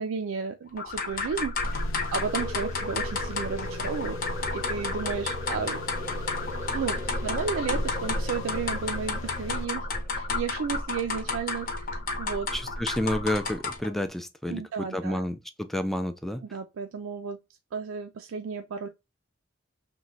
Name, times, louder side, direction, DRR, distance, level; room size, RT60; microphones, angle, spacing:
voice 1, 0.0-1.8 2.1-4.2 4.5-5.8 6.7-12.5 14.5-15.2 16.4-17.4 17.7-18.9, right 6 dB, 85° right, 0.4 m, -33 dB
sound 1, 0.8-14.0, left 3 dB, 45° left, 0.8 m, -32 dB
sound 2, 1.6-9.7, left 6 dB, 70° left, 0.4 m, -41 dB
sound 3, 2.3-11.6, right 1 dB, 15° right, 0.7 m, -41 dB
voice 2, 12.5-16.4, left 1 dB, ahead, 0.3 m, -30 dB
3.0 x 2.2 x 3.9 m
head